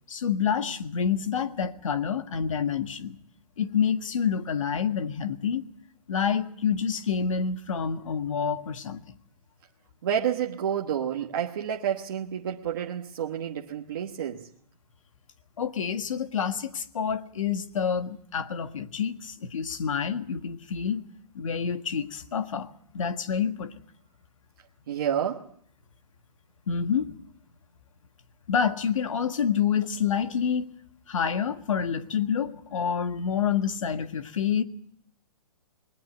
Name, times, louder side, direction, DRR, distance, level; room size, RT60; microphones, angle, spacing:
voice 1, 0.1-3.2 3.6-5.7 6.1-9.0 15.6-21.0 21.3-22.7 22.9-23.7 26.7-27.1 28.5-30.7 31.1-34.6, left 7 dB, 60° left, 1.6 m, -28 dB
voice 2, 10.0-14.5 24.9-25.5, right 9 dB, 35° right, 1.2 m, -29 dB
20.5 x 20.0 x 8.0 m
hypercardioid pair, 180°, 19 cm